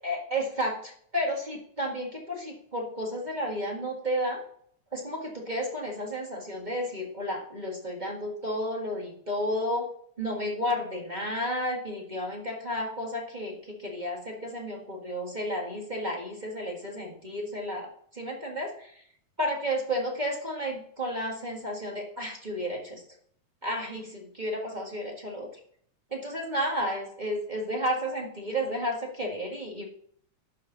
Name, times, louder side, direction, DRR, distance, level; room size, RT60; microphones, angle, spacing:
voice 1, 0.0-4.4 4.9-9.9 10.2-19.0 19.4-23.0 23.6-25.5 26.1-29.8, equal, 20° right, -1 dB, 1.1 m, -32 dB
11.5 x 6.6 x 3.9 m, 0.62 s
omnidirectional pair, 3.5 m